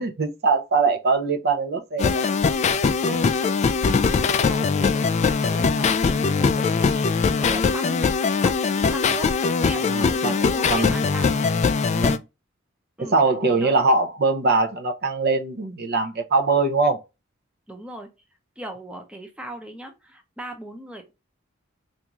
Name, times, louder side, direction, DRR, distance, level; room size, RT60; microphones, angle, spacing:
voice 1, 0.0-2.3 9.8-10.4 10.7-10.9 11.9-12.2 13.0-17.0, right 3 dB, 55° right, 0.6 m, -22 dB
sound 1, 2.0-12.2, left 5 dB, 35° left, 0.3 m, -21 dB
voice 2, 3.1-8.1 8.4-11.5 13.0-13.2 13.5-13.7 17.7-18.1 18.6-21.1, right 1 dB, 5° right, 0.7 m, -39 dB
3.5 x 2.6 x 2.9 m
head